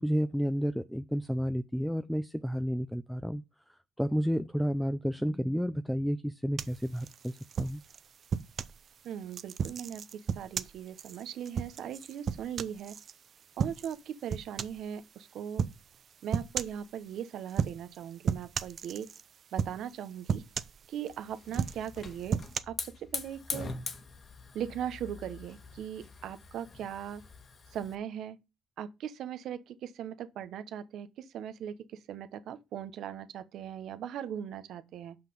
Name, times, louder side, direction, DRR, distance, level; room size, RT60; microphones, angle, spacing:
voice 1, 0.0-3.4 4.0-7.8, equal, ahead, 0.4 m, -31 dB
sound 1, 6.6-8.8 9.3-13.1 13.6-14.0 14.3-14.9 15.6-15.8 16.3-16.8 17.5-18.0 18.3-19.2 19.6-20.0 20.3-21.1 21.5-22.6, right 7 dB, 45° right, 0.6 m, -34 dB
voice 2, 9.0-13.0 13.6-15.6 16.2-19.1 19.5-20.4 20.9-22.4 22.7-23.7 24.5-27.2 27.7-28.4 28.8-35.2, right 9 dB, 65° right, 1.0 m, -39 dB
Hiss / Fire, 21.1-27.9, left 4 dB, 40° left, 1.5 m, -43 dB
5.8 x 5.7 x 6.9 m
cardioid pair, 110°, 0 cm